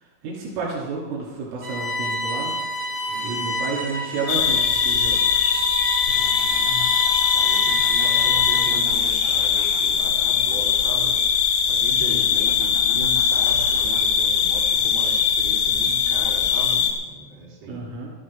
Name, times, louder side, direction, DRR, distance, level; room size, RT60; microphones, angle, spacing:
voice 1, 0.2-2.5 3.2-5.2 17.7-18.1, right 4 dB, 85° right, -5 dB, 5.9 m, -30 dB
Bowed string instrument, 1.6-8.9, left 1 dB, 25° right, 4.5 m, -28 dB
voice 2, 3.1-3.6 6.1-6.8 7.3-17.8, right 3 dB, 55° right, -7 dB, 6.0 m, -37 dB
sound 1, 4.3-16.9, left 7 dB, 70° left, 2.9 m, -21 dB
18.0 x 13.5 x 3.8 m, 1.2 s
omnidirectional pair, 5.6 m